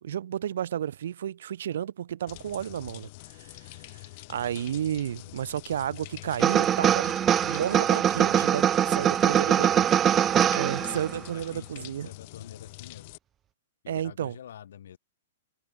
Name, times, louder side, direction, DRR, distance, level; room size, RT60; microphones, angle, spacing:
voice 1, 0.0-3.1 3.4-4.0 4.3-7.2 7.4-9.7 10.5-12.1 13.9-14.3, right 10 dB, 60° right, 2.9 m, -32 dB
sound 1, 2.3-13.2, left 25 dB, 30° left, 6.7 m, -45 dB
sound 2, 6.4-11.2, right 10 dB, 15° right, 0.4 m, -23 dB
voice 2, 9.0-10.0 10.7-13.1 13.8-15.0, left 10 dB, 60° left, 8.0 m, -47 dB
hypercardioid pair, 175°, 0 cm